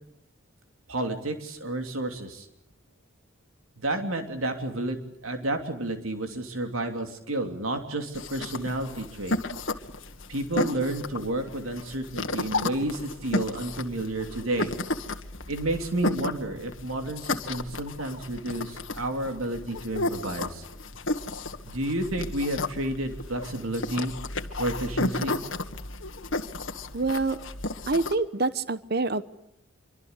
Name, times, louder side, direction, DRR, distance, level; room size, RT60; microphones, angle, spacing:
voice 1, 0.9-2.5 3.8-9.4 10.3-14.7 15.5-20.6 21.7-24.1 24.6-25.4, right 1 dB, 90° right, 5 dB, 3.1 m, -31 dB
sound 1, 8.1-28.1, left 2 dB, 70° left, 1.9 m, -33 dB
voice 2, 26.9-27.4 27.9-29.2, right 3 dB, 50° right, 14 dB, 1.1 m, -26 dB
26.5 x 24.5 x 8.2 m, 0.75 s
head